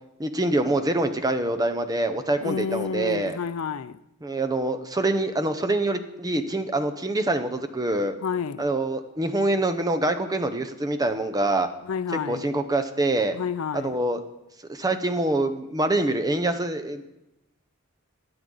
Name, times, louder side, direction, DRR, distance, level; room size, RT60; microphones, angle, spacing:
voice 1, 0.2-3.4 4.2-8.1 8.6-11.7 12.3-13.4 13.7-14.2 14.7-17.0, right 2 dB, 15° right, 0.8 m, -25 dB
voice 2, 2.4-4.0 8.2-8.6 11.8-12.5 13.3-14.0, left 6 dB, 75° left, 0.4 m, -30 dB
21.5 x 7.8 x 3.9 m
head